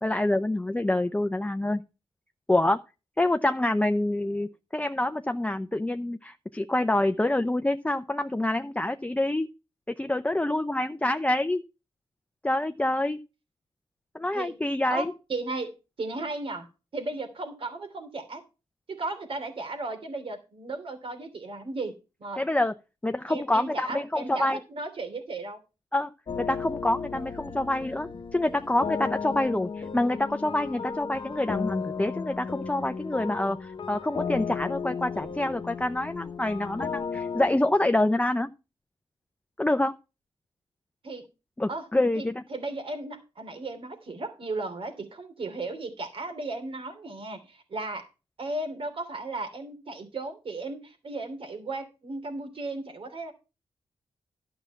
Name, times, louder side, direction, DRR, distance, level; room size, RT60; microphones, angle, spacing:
voice 1, 0.0-1.8 2.5-2.8 3.2-9.5 9.9-11.6 12.4-13.2 14.1-15.1 22.4-22.7 23.0-24.6 25.9-38.5 39.6-40.0 41.6-42.4, left 1 dB, 10° left, 0.6 m, -26 dB
voice 2, 14.9-16.7 16.9-18.4 18.9-21.9 22.2-22.4 23.3-25.6 41.0-41.2 41.7-41.9 42.1-48.1 48.4-53.3, right 2 dB, 55° right, 2.9 m, -35 dB
sound 1, 26.3-37.6, left 5 dB, 50° left, 1.1 m, -35 dB
12.0 x 5.9 x 5.6 m
wide cardioid pair, 100°, 11 cm